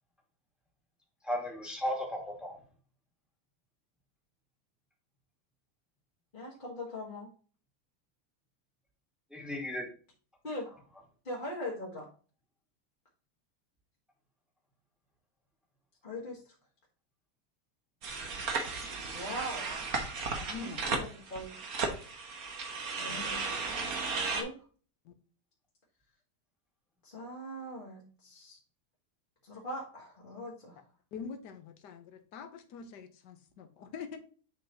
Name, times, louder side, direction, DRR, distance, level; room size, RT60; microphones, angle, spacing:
voice 1, 1.2-2.6 9.3-9.9 20.2-20.4, left 1 dB, ahead, 0 dB, 1.9 m, -36 dB
voice 2, 6.3-7.3 10.4-10.7 11.2-12.0 16.0-16.5 19.1-19.6 20.5-21.5 23.0-24.6 27.0-28.6 29.4-30.8, left 1 dB, 30° left, -4 dB, 1.8 m, -41 dB
sound 1, 18.0-24.4, right 4 dB, 60° right, 1.7 m, -35 dB
voice 3, 20.5-20.8 23.1-23.2 25.0-25.1 31.1-34.2, left 5 dB, 80° left, 9 dB, 1.6 m, -44 dB
7.5 x 5.3 x 2.9 m, 0.39 s
omnidirectional pair, 1.8 m